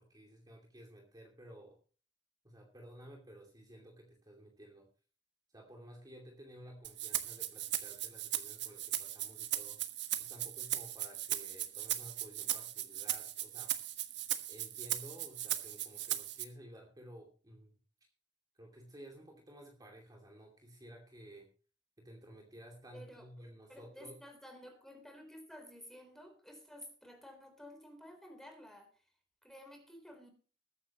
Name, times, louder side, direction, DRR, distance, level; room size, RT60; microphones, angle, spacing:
voice 1, 0.0-1.8 2.4-4.9 5.5-9.8 10.2-13.7 14.5-17.8 18.6-21.5 22.0-24.2, equal, 20° right, 1 dB, 2.7 m, -54 dB
Rattle (instrument), 6.8-16.4, right 13 dB, 65° right, 1.3 m, -38 dB
voice 2, 22.9-23.3 23.7-28.9 29.4-30.3, equal, ahead, 4 dB, 3.8 m, -53 dB
21.0 x 9.5 x 3.0 m, 0.38 s
head